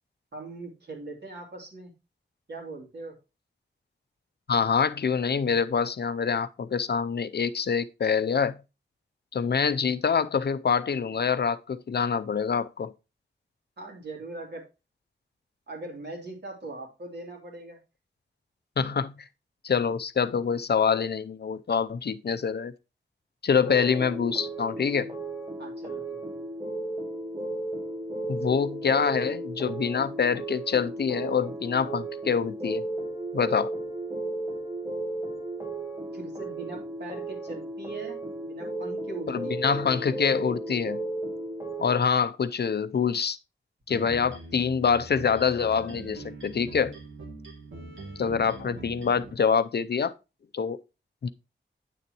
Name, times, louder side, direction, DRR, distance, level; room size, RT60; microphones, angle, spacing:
voice 1, 0.3-1.9 2.5-3.1 13.8-14.6 15.7-17.8 25.6-26.2 36.1-39.8, right 2 dB, 60° right, 2.8 m, -41 dB
voice 2, 4.5-8.6 9.3-12.9 18.8-19.3 19.6-22.7 23.4-25.1 28.3-32.8 33.3-33.7 39.3-41.0 41.8-43.4 43.9-47.0 48.2-50.1 50.5-50.8 51.2-51.3, left 6 dB, 55° left, 0.5 m, -25 dB
sound 1, 23.6-42.0, right 2 dB, 15° right, 1.4 m, -34 dB
sound 2, 43.9-49.3, right 2 dB, 85° right, 2.5 m, -43 dB
8.7 x 6.8 x 2.9 m
wide cardioid pair, 120°, 20 cm